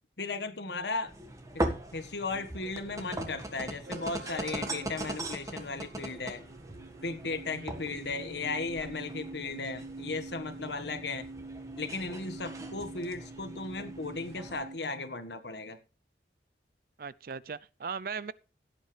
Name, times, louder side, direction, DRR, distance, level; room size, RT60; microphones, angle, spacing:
voice 1, 0.2-1.1 1.5-6.4 7.0-11.3 11.8-15.8, left 3 dB, 75° left, 1.6 m, -36 dB
sound 1, 1.1-14.6, right 1 dB, 20° right, 1.5 m, -40 dB
sound 2, 3.9-14.8, right 3 dB, 80° right, 0.8 m, -46 dB
voice 2, 17.0-18.3, right 5 dB, 55° right, 0.5 m, -38 dB
16.5 x 8.5 x 3.3 m
head